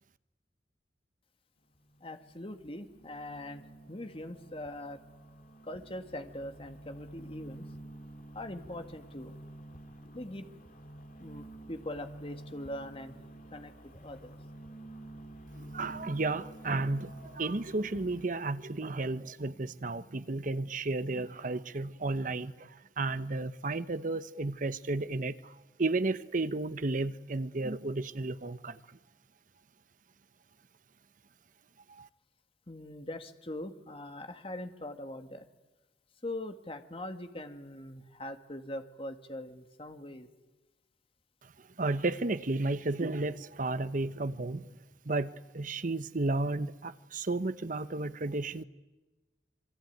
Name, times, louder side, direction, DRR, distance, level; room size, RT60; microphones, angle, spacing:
sound 1, 1.7-18.2, right 1 dB, 50° left, 2.7 m, -49 dB
voice 1, 2.0-3.6 3.9-5.0 5.7-7.6 8.4-9.3 10.1-10.4 11.2-13.2 13.5-13.7 14.0-14.4 32.7-35.5 36.2-40.3, left 1 dB, 30° left, 1.8 m, -42 dB
voice 2, 15.6-29.0 31.9-32.1 41.8-44.6 45.0-48.6, right 2 dB, 50° right, 1.0 m, -33 dB
27.0 x 22.5 x 9.3 m
head